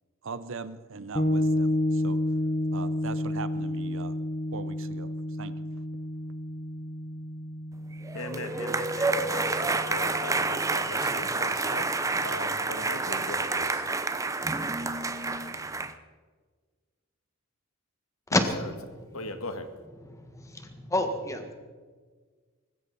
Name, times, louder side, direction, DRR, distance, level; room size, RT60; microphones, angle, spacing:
voice 1, 0.2-2.2 2.7-4.2 4.5-5.6, right 4 dB, 65° right, 14 dB, 0.8 m, -40 dB
sound 1, 1.1-10.8, left 1 dB, 35° left, 0.8 m, -31 dB
sound 2, 8.0-15.9, right 3 dB, 15° right, 0.7 m, -29 dB
voice 2, 8.1-11.9 12.2-13.8 19.1-19.7, left 2 dB, 85° left, 8 dB, 1.7 m, -39 dB
voice 3, 18.3-18.6 19.0-19.3 20.0-21.5, left 1 dB, 15° left, 6 dB, 1.7 m, -29 dB
19.5 x 16.0 x 4.2 m, 1.5 s
head